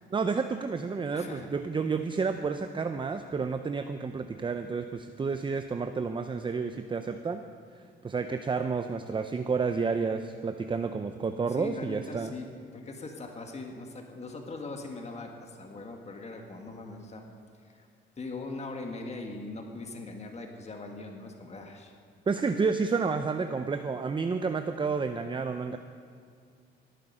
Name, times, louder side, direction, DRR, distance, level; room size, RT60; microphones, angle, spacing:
voice 1, 0.1-7.4 8.0-12.3 22.3-25.8, right 5 dB, 25° right, 8 dB, 0.6 m, -30 dB
voice 2, 1.1-1.5 11.6-12.5 12.7-17.2 17.6-17.9 18.2-21.9, left 3 dB, 35° left, 3 dB, 1.7 m, -40 dB
18.0 x 9.2 x 5.5 m, 2.3 s
cardioid pair, 90°, 20 cm